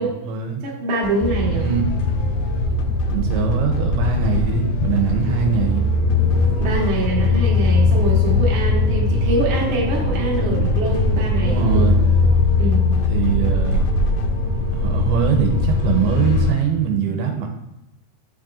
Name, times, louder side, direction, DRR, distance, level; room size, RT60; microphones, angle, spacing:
voice 1, 0.0-0.6 1.6-2.5 3.1-5.9 11.4-12.0 13.1-13.9 14.7-17.5, right 7 dB, 85° right, 3 dB, 2.6 m, -22 dB
voice 2, 0.6-1.7 6.6-11.9 12.6-12.9, right 2 dB, 55° right, -4 dB, 1.5 m, -24 dB
sound 1, 1.0-14.3, left 8 dB, 90° left, 2.0 m, -38 dB
sound 2, 1.2-16.5, left 2 dB, 65° left, 2.4 m, -20 dB
7.5 x 6.5 x 2.5 m, 0.87 s
omnidirectional pair, 4.6 m